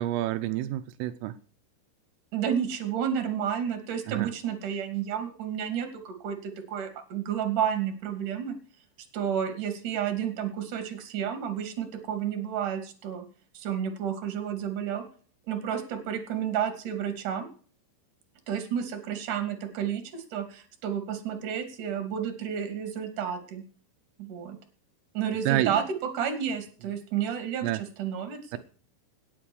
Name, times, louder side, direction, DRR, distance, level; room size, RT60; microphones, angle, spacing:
voice 1, 0.0-1.4 4.1-4.3 25.5-25.8 27.6-27.8 28.5-28.6, right 14 dB, 90° right, 3.5 m, -28 dB
voice 2, 2.3-8.6 9.1-13.2 13.5-15.0 15.4-17.5 18.5-23.6 24.2-24.6 25.1-28.6, right 8 dB, 45° right, 3.7 m, -31 dB
17.5 x 9.4 x 6.4 m
omnidirectional pair, 5.7 m